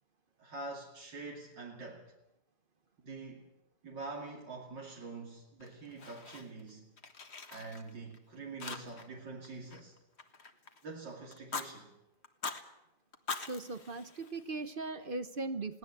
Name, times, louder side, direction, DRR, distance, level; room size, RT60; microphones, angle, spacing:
voice 1, 0.4-2.1 3.0-3.5 3.8-6.9 7.5-9.9 10.8-11.9, right 3 dB, 70° right, -1 dB, 3.3 m, -45 dB
Fire, 5.6-6.7 7.0-8.2 8.6-9.2 9.4-10.8 11.3-11.7 12.2-12.6 13.1-14.7, left 4 dB, 35° left, 1.7 m, -43 dB
voice 2, 13.5-15.8, right 3 dB, 40° right, 12 dB, 0.8 m, -39 dB
21.5 x 17.5 x 8.2 m, 0.91 s
omnidirectional pair, 2.0 m